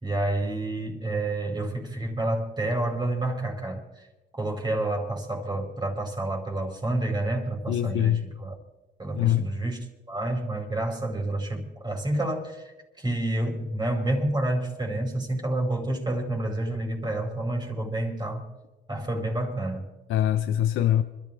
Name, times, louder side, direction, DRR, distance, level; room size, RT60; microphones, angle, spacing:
voice 1, 0.0-4.1 4.3-8.6 9.0-18.5 18.9-19.8, right 1 dB, 20° right, 4.8 m, -29 dB
voice 2, 7.7-8.2 9.1-9.5 20.1-21.0, left 11 dB, 80° left, 0.7 m, -23 dB
26.5 x 13.5 x 3.5 m
cardioid pair, 90°, 20 cm